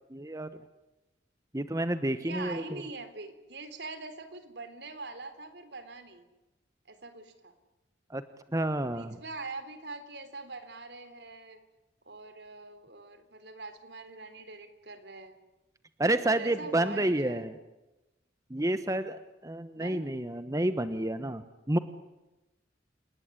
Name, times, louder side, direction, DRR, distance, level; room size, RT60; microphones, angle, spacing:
voice 1, 0.1-0.6 1.5-2.8 8.1-8.2 8.5-9.2 16.0-17.6 18.5-21.8, right 1 dB, 20° right, 11 dB, 1.1 m, -30 dB
voice 2, 2.2-6.2 6.9-7.5 8.9-11.6 12.0-15.4 16.0-17.5 19.7-20.1, right 3 dB, 70° right, 10 dB, 3.6 m, -43 dB
29.5 x 19.5 x 9.7 m, 1.0 s
head